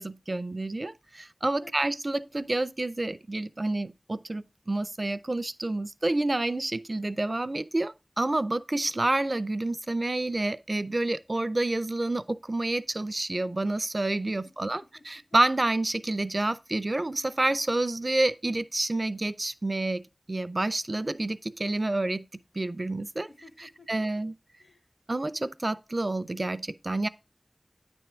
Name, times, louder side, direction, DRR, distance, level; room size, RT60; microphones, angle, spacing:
voice 1, 0.0-20.0 20.3-22.2 22.6-23.3 23.9-24.3 25.1-27.1, right 2 dB, 55° right, 0.4 m, -29 dB
voice 2, 1.6-1.9 14.4-15.4 23.3-24.2 24.6-24.9, left 3 dB, 60° left, 0.9 m, -56 dB
9.1 x 3.5 x 4.2 m
wide cardioid pair, 40°, 0 cm